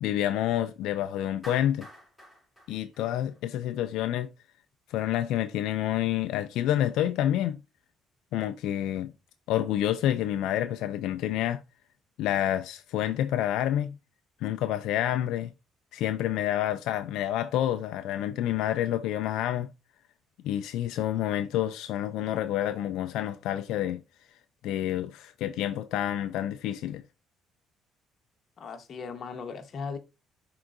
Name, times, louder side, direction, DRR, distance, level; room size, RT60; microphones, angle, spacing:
voice 1, 0.0-1.9 2.7-4.3 4.9-7.6 8.3-9.1 9.5-11.6 12.2-14.0 14.4-15.5 15.9-19.7 20.4-24.0 24.6-27.0, left 12 dB, 85° left, 0.4 m, -28 dB
Clapping, 1.4-3.7, equal, 5° left, 3.2 m, -48 dB
voice 2, 28.6-30.0, left 5 dB, 45° left, 1.1 m, -37 dB
10.5 x 3.8 x 2.5 m
cardioid pair, 125°, 0 cm